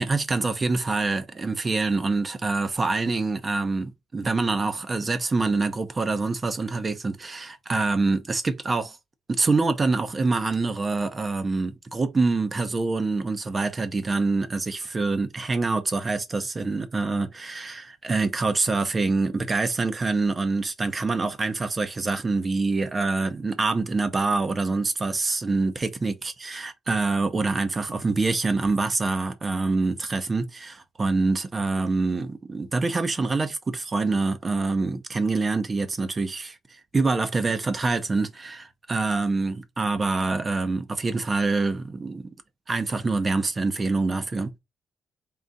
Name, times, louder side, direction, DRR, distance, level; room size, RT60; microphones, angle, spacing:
voice 1, 0.0-9.0 9.3-36.6 36.9-42.3 42.7-44.5, right 3 dB, 30° right, 0.7 m, -25 dB
3.9 x 2.4 x 3.9 m
cardioid pair, 90°, 0 cm